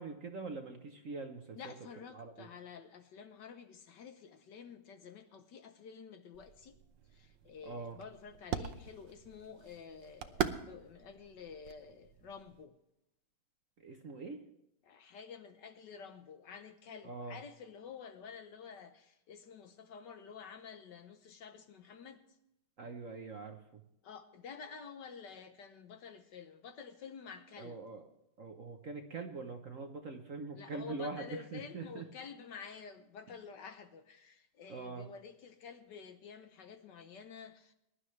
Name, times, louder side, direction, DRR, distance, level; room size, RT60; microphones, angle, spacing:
voice 1, 0.0-1.7 2.1-2.5 7.6-8.0 13.8-14.4 17.0-17.4 22.8-23.8 27.6-28.0 28.4-32.1 34.7-35.1, right 3 dB, 50° right, 1.0 m, -43 dB
voice 2, 1.5-6.8 7.1-12.7 14.8-22.2 24.0-27.8 30.5-37.7, left 6 dB, 65° left, 1.3 m, -50 dB
sound 1, 6.3-12.6, right 8 dB, 65° right, 1.4 m, -42 dB
22.0 x 11.5 x 3.2 m
omnidirectional pair, 2.3 m